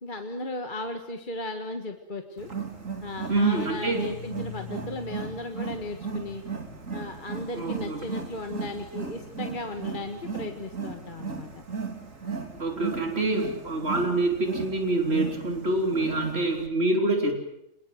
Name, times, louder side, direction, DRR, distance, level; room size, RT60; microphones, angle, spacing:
voice 1, 0.0-2.5 3.0-6.4 6.9-11.5, left 2 dB, 40° left, 6 dB, 1.8 m, -35 dB
Wild animals, 2.4-16.7, right 5 dB, 70° right, 3.3 m, -36 dB
voice 2, 3.3-4.0 7.5-8.1 12.6-17.3, right 2 dB, 50° right, 3 dB, 3.8 m, -26 dB
26.0 x 21.0 x 7.9 m, 0.79 s
omnidirectional pair, 1.4 m